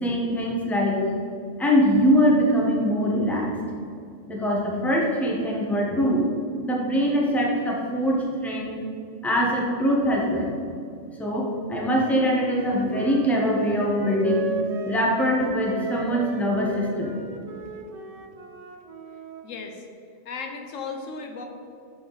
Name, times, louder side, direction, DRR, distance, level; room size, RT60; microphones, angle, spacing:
voice 1, 0.0-1.1 1.6-3.5 4.3-6.3 6.6-8.8 9.2-10.5 11.2-14.5 14.8-17.2, equal, ahead, -2 dB, 0.9 m, -23 dB
Wind instrument woodwind instrument, 12.0-19.4, right 6 dB, 50° right, 0.4 m, -36 dB
voice 2, 19.4-19.8 20.2-21.4, left 4 dB, 80° left, 4 dB, 1.1 m, -35 dB
6.7 x 6.0 x 4.0 m, 2.4 s
omnidirectional pair, 1.3 m